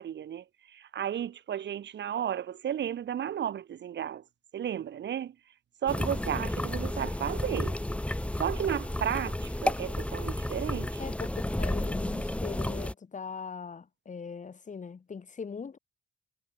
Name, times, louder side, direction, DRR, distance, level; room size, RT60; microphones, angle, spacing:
voice 1, 0.0-4.2 4.5-5.4 5.8-7.8 8.4-11.1, right 9 dB, 65° right, 3.6 m, -33 dB
sound 1, 5.9-12.9, left 1 dB, 5° left, 1.5 m, -32 dB
voice 2, 11.0-15.8, left 5 dB, 40° left, 7.1 m, -40 dB
cardioid pair, 90°, 20 cm